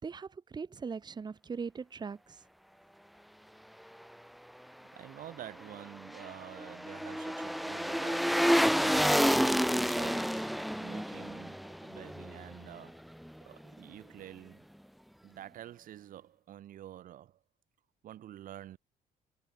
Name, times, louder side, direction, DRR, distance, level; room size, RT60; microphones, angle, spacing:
voice 1, 0.0-2.4, right 5 dB, 30° right, 2.9 m, -40 dB
voice 2, 4.9-9.2 9.6-10.5 10.8-13.1 13.4-14.7 15.2-17.4 18.0-18.8, right 12 dB, 65° right, 5.4 m, -49 dB
sound 1, 5.7-12.9 13.2-13.3, equal, ahead, 2.1 m, -30 dB
cardioid pair, 125°, 15 cm